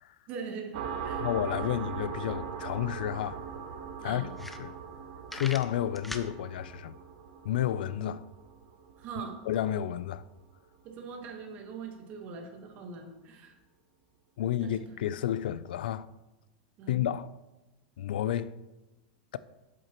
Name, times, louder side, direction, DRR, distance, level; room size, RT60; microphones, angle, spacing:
voice 1, 0.3-1.3 4.0-4.2 9.0-9.4 10.8-13.5 14.6-14.7 16.8-16.9, right 5 dB, 35° right, 1.2 m, -41 dB
sound 1, 0.7-10.0, right 6 dB, 55° right, 0.8 m, -40 dB
voice 2, 1.2-3.4 4.0-4.3 4.6-4.7 5.3-6.9 7.4-8.2 9.5-10.2 14.4-16.1 16.9-17.3 18.0-18.5, left 11 dB, 85° left, 0.3 m, -31 dB
sound 2, 3.3-3.4 3.9-4.0 4.3-5.0 5.3-6.3, left 1 dB, 5° left, 0.4 m, -40 dB
7.8 x 7.6 x 3.0 m
supercardioid pair, 165°, 5 cm